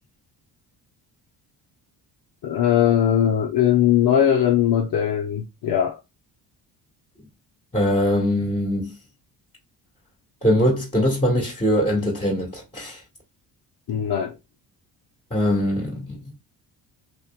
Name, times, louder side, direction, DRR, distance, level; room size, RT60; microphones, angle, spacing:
voice 1, 2.4-6.0 13.9-14.4, left 10 dB, 50° left, 0.8 m, -20 dB
voice 2, 7.7-9.0 10.4-13.0 15.3-16.2, equal, 15° left, 1.4 m, -22 dB
2.8 x 2.6 x 2.2 m
supercardioid pair, 60°, 45 cm